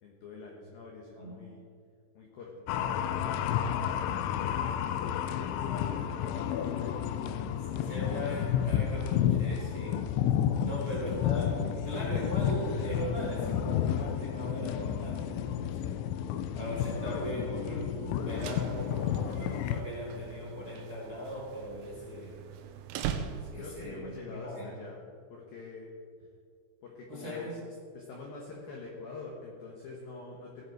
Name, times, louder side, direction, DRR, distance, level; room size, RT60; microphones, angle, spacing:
voice 1, 0.0-1.6 2.1-7.0 10.7-10.9 23.4-25.0 25.3-25.9 26.8-27.6 27.9-30.6, left 4 dB, 75° left, -1 dB, 2.2 m, -46 dB
voice 2, 1.1-1.5 7.7-10.0 10.6-22.4 23.5-24.7 27.1-27.6, equal, 30° right, -6 dB, 1.7 m, -39 dB
sound 1, 2.7-19.8, left 9 dB, 90° left, 2.6 m, -31 dB
sound 2, 18.1-23.9, right 8 dB, 85° right, 2.7 m, -41 dB
17.0 x 8.1 x 4.7 m, 2.1 s
omnidirectional pair, 6.0 m